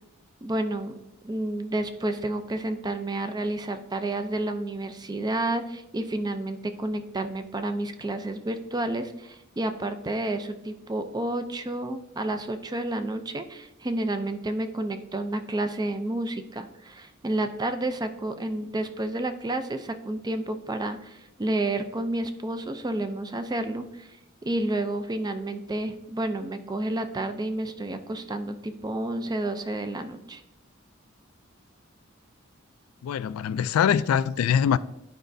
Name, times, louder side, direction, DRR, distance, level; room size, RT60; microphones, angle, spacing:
voice 1, 0.4-1.0 1.2-24.1 24.4-30.4, right 1 dB, 20° right, 0.5 m, -30 dB
voice 2, 33.0-34.8, left 8 dB, 90° left, 0.3 m, -23 dB
11.0 x 5.0 x 2.6 m
head